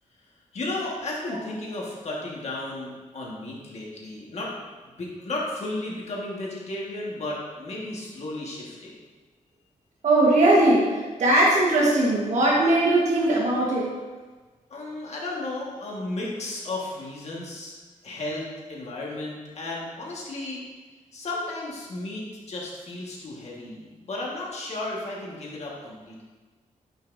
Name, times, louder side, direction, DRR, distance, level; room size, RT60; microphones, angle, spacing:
voice 1, 0.5-4.5 4.8-9.0 14.7-17.7 18.0-20.6 21.1-26.2, left 2 dB, 55° left, -3 dB, 1.6 m, -34 dB
voice 2, 10.0-13.9, right 1 dB, 60° right, -4 dB, 1.3 m, -20 dB
9.2 x 5.7 x 2.6 m, 1.3 s
wide cardioid pair, 160°, 14 cm